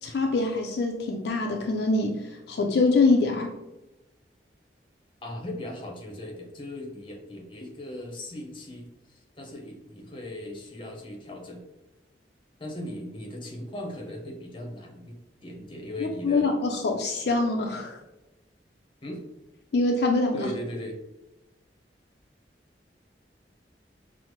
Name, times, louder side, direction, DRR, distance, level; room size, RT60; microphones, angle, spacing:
voice 1, 0.0-2.2 2.5-3.5 16.0-18.0 19.7-20.5, left 3 dB, 65° left, 1 dB, 0.4 m, -24 dB
voice 2, 5.2-8.9 9.4-11.6 12.6-15.1 15.4-16.5 19.0-19.2 20.3-21.0, left 1 dB, 30° left, 1 dB, 0.7 m, -38 dB
5.6 x 2.0 x 3.0 m, 0.98 s
head